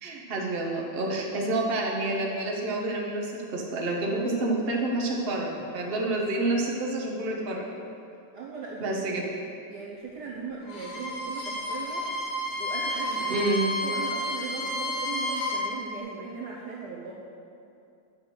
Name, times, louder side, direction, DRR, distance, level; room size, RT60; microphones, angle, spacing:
voice 1, 0.0-7.7 8.8-9.2 13.3-13.6, right 2 dB, 35° right, -2 dB, 1.1 m, -28 dB
voice 2, 8.3-9.2 9.7-13.5 13.8-17.2, right 5 dB, 60° right, -3 dB, 1.2 m, -38 dB
Bowed string instrument, 10.6-15.7, left 1 dB, 80° left, 2.3 m, -31 dB
9.2 x 5.8 x 6.3 m, 2.6 s
omnidirectional pair, 2.3 m